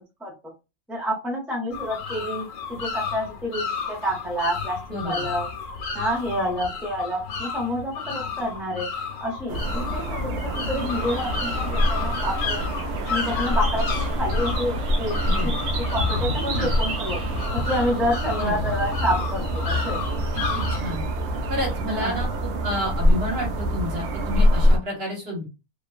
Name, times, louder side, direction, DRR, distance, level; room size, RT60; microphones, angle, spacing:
voice 1, 0.9-4.8 5.0-5.5 5.9-8.9 9.2-10.4 10.7-12.6 13.1-13.9 14.2-15.5 15.8-17.2 17.5-20.0 21.9-22.2, equal, ahead, -2 dB, 0.4 m, -28 dB
sound 1, 1.7-20.8, left 5 dB, 80° left, 1.2 m, -32 dB
voice 2, 4.9-5.3 15.2-15.7 16.4-16.8 18.4-18.5 20.3-21.0 21.5-25.5, equal, 45° right, -1 dB, 1.3 m, -30 dB
sound 2, 9.5-24.8, equal, 65° right, 0.7 m, -25 dB
sound 3, 10.8-17.5, right 4 dB, 90° right, 1.2 m, -36 dB
2.8 x 2.3 x 2.3 m, 0.28 s
omnidirectional pair, 1.5 m